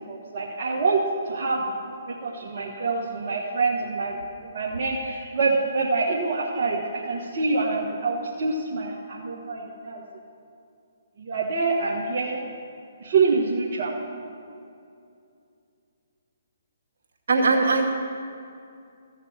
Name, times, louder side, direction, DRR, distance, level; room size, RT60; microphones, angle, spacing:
voice 1, 0.1-1.0 1.2-4.2 4.4-10.0 11.2-12.4 13.0-13.9, right 4 dB, 50° right, -4 dB, 1.5 m, -26 dB
voice 2, 17.3-17.8, right 3 dB, 65° right, 0 dB, 2.2 m, -20 dB
14.5 x 6.6 x 8.7 m, 2.5 s
hypercardioid pair, 140°, 0 cm